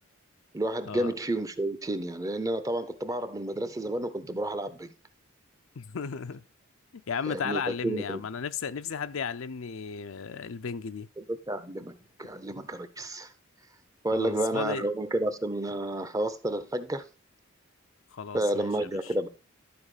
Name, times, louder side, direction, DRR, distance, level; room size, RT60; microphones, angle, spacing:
voice 1, 0.5-4.9 7.3-8.2 11.2-13.3 14.0-17.1 18.3-19.3, right 1 dB, 15° right, 0.7 m, -31 dB
voice 2, 5.8-6.4 7.1-11.1 14.1-14.9 18.1-19.1, left 6 dB, 65° left, 0.5 m, -35 dB
12.0 x 4.7 x 4.9 m
head